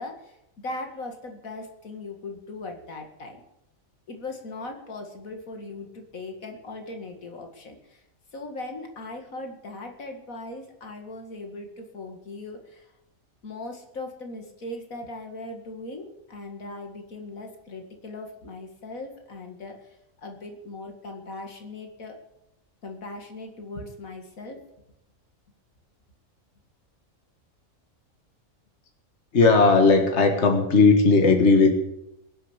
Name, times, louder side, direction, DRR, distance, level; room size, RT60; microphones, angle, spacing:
voice 1, 0.0-3.4 4.1-8.0 8.3-12.9 13.4-22.2 22.8-24.6, left 2 dB, 80° left, 4 dB, 2.5 m, -39 dB
voice 2, 29.3-31.8, left 4 dB, 55° left, 4 dB, 2.0 m, -17 dB
21.5 x 7.6 x 8.1 m, 0.86 s
omnidirectional pair, 1.4 m